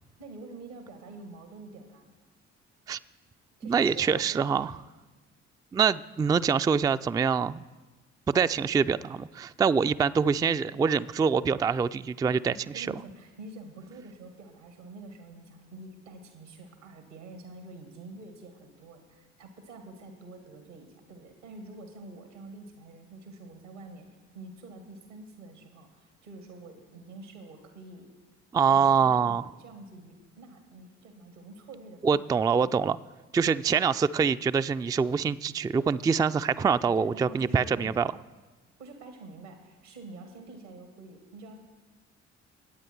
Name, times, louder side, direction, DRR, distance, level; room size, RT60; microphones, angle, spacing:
voice 1, 0.2-2.1 3.6-4.7 12.5-24.1 24.3-28.1 28.7-32.9 36.9-38.1 38.8-41.6, right 2 dB, 85° right, 5 dB, 2.3 m, -47 dB
voice 2, 3.6-4.7 5.7-7.6 8.3-12.9 28.5-29.4 32.0-33.0 33.3-38.1, right 6 dB, 10° right, 13 dB, 0.3 m, -25 dB
21.0 x 9.2 x 4.6 m, 1.2 s
figure-of-eight pair, 45°, 35 cm